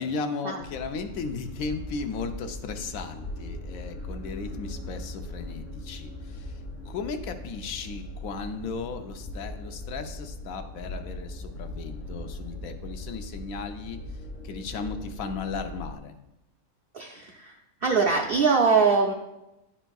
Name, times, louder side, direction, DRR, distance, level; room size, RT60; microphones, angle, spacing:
voice 1, 0.0-14.0 14.4-16.1, left 4 dB, 80° left, 6 dB, 1.0 m, -36 dB
sound 1, 0.6-16.0, left 1 dB, 45° left, 0.9 m, -39 dB
voice 2, 16.9-17.6 17.8-19.1, right 5 dB, 60° right, 1 dB, 0.6 m, -22 dB
10.0 x 4.4 x 2.3 m, 0.92 s
omnidirectional pair, 1.5 m